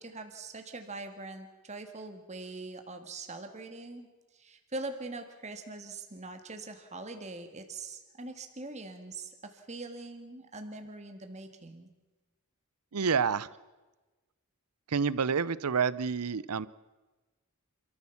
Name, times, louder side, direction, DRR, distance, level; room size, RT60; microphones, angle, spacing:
voice 1, 0.0-4.1 4.3-11.9, right 2 dB, 30° right, 6 dB, 1.9 m, -42 dB
voice 2, 12.9-13.5 14.9-16.7, right 6 dB, 85° right, 20 dB, 0.7 m, -28 dB
27.0 x 14.0 x 7.1 m, 1.2 s
head